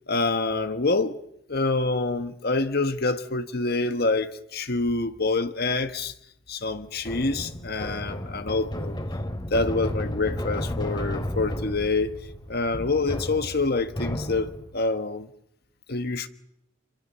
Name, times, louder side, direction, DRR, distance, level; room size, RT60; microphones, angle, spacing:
voice 1, 0.1-1.2 1.5-6.1 6.5-9.0 9.5-12.2 12.5-15.3 15.9-16.3, left 3 dB, 55° left, 1.5 m, -26 dB
sound 1, 7.0-14.8, left 1 dB, 25° left, 2.5 m, -33 dB
27.5 x 23.5 x 7.0 m
head